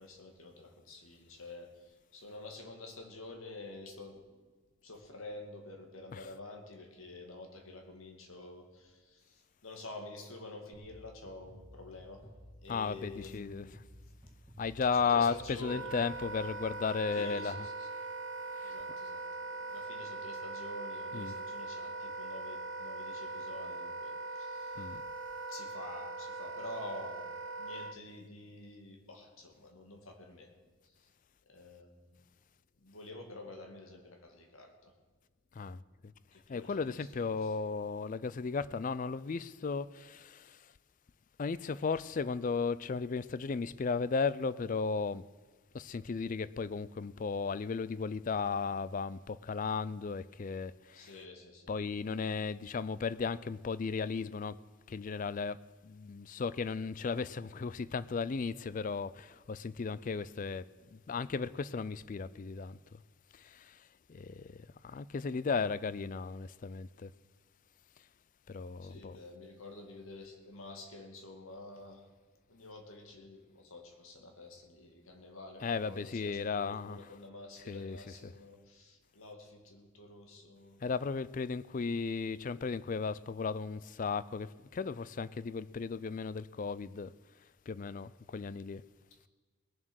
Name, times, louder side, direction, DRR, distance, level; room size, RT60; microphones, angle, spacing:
voice 1, 0.0-4.2 4.8-12.2 12.6-13.8 14.9-15.9 17.1-17.9 18.6-25.0 25.5-27.3 27.6-30.5 30.8-31.1 31.5-32.2 32.8-34.9 36.3-37.6 50.9-51.7 68.8-72.1 72.5-80.8, left 2 dB, 85° left, 2.3 m, -49 dB
sound 1, 10.7-17.3, equal, 15° right, 2.1 m, -55 dB
voice 2, 12.7-13.6 14.6-17.7 18.5-18.8 21.1-21.3 24.8-25.0 35.5-35.8 36.5-40.7 41.4-45.2 45.7-51.1 51.7-54.6 54.9-63.0 63.3-67.1 68.5-69.2 75.6-77.0 77.7-78.0 78.2-78.3 80.8-87.1 87.7-88.8, left 5 dB, 40° left, 0.4 m, -35 dB
Wind instrument woodwind instrument, 15.7-28.0, right 3 dB, 70° right, 0.6 m, -41 dB
20.0 x 7.3 x 6.4 m
head